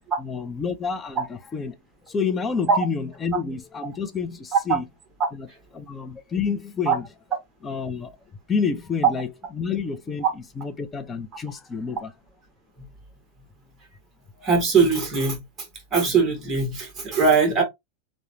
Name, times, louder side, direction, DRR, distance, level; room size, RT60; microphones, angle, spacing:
voice 1, 0.2-1.7 2.1-4.8 5.3-5.5 5.7-7.0 7.6-8.2 8.5-9.3 9.5-10.2 10.6-12.1, left 5 dB, 15° left, 0.3 m, -28 dB
voice 2, 14.4-15.4 15.9-17.6, right 5 dB, 20° right, 1.1 m, -20 dB
3.0 x 2.0 x 2.4 m
supercardioid pair, 155°, 0 cm